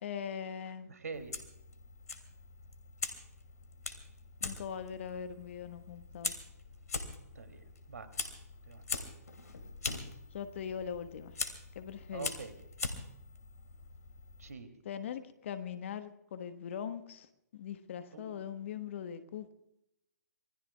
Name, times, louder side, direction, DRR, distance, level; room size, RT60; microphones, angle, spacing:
voice 1, 0.0-0.9 4.4-6.3 10.3-11.4 11.7-12.3 14.8-17.3 17.5-19.5, left 8 dB, 45° left, 1.3 m, -41 dB
voice 2, 0.9-1.4 7.3-8.3 8.6-9.1 12.1-12.5 14.4-14.7 18.1-18.4, right 4 dB, 65° right, 2.8 m, -45 dB
Fire, 1.1-14.5, left 4 dB, 65° left, 2.6 m, -42 dB
27.0 x 21.0 x 2.3 m
figure-of-eight pair, 130°, 9 cm